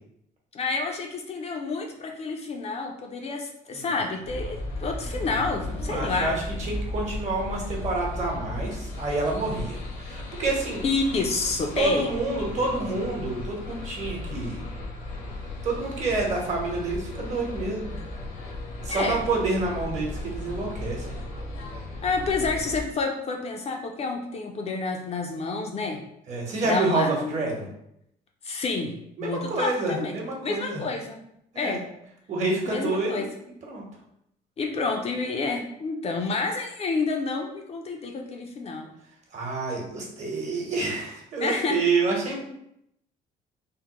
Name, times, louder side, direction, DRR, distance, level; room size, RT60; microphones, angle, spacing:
voice 1, 0.5-6.4 10.8-12.1 12.6-12.7 18.9-19.2 22.0-26.0 26.6-27.4 28.4-30.1 30.4-31.2 31.6-31.8 32.7-33.3 34.6-38.9 41.4-41.8, left 3 dB, 40° left, 2 dB, 0.4 m, -29 dB
sound 1, 4.2-22.8, left 2 dB, 75° left, 0.9 m, -35 dB
voice 2, 5.7-10.8 11.8-14.6 15.6-18.0 18.8-21.2 26.3-27.7 29.2-30.8 31.5-31.8 32.3-33.1 33.7-33.8 39.3-42.4, right 3 dB, 45° right, -1 dB, 1.0 m, -28 dB
3.5 x 2.0 x 2.9 m, 0.76 s
cardioid pair, 110°, 17 cm